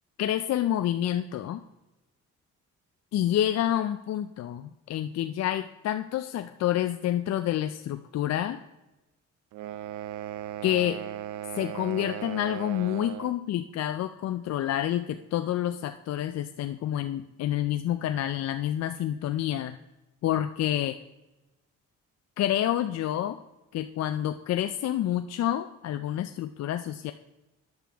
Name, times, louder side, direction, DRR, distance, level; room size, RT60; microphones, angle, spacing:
voice 1, 0.2-1.6 3.1-8.6 10.6-11.0 11.5-19.8 20.2-21.0 22.4-23.4 23.7-27.1, left 12 dB, 60° left, 8 dB, 0.4 m, -28 dB
sound 1, 9.5-13.4, right 12 dB, 80° right, 0.5 m, -37 dB
10.5 x 7.5 x 3.4 m, 1.0 s
cardioid pair, 90°, 30 cm